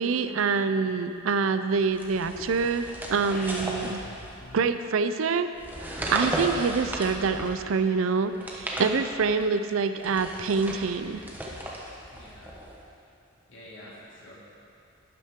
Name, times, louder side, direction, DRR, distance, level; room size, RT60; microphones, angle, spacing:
voice 1, 0.0-4.0 4.5-5.5 6.1-11.2, right 5 dB, 75° right, 10 dB, 0.5 m, -26 dB
sound 1, 1.9-4.7 5.5-7.7 8.3-9.4 10.0-12.9, right 1 dB, 10° right, 1.0 m, -35 dB
sound 2, 3.1-4.7, left 2 dB, 40° left, 0.9 m, -44 dB
voice 2, 12.1-12.6 13.5-14.3, left 1 dB, 65° left, -7 dB, 2.6 m, -48 dB
12.0 x 9.4 x 3.6 m, 2.6 s
head